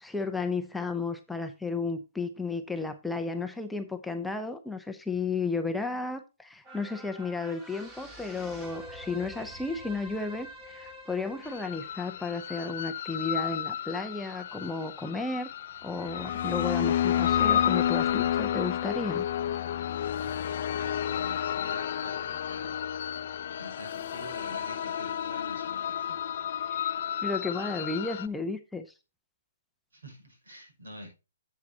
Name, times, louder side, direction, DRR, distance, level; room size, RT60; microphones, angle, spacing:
voice 1, 0.0-15.5 15.8-19.2 26.7-28.9, left 3 dB, 5° left, 0.6 m, -33 dB
sound 1, 6.6-13.3 13.7-13.8, equal, 15° right, 2.0 m, -47 dB
sound 2, 11.5-28.3, left 10 dB, 55° left, 0.6 m, -31 dB
voice 2, 20.0-22.7 23.5-26.4 29.9-31.1, equal, 80° right, 5.8 m, -47 dB
10.5 x 7.6 x 2.8 m
hypercardioid pair, 140°, 0 cm